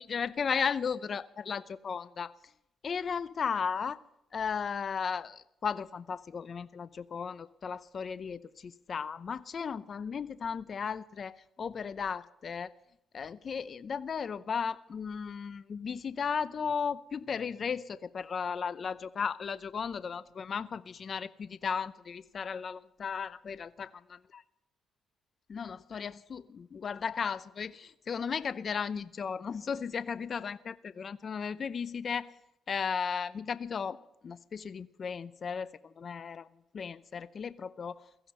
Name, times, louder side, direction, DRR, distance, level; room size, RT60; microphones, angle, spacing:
voice 1, 0.0-2.3 2.8-4.0 4.3-12.7 13.1-24.4 25.5-32.4 32.7-34.0 34.2-36.5 36.7-38.1, left 6 dB, 45° left, 0.6 m, -35 dB
16.5 x 15.0 x 5.6 m
cardioid pair, 90°, 0 cm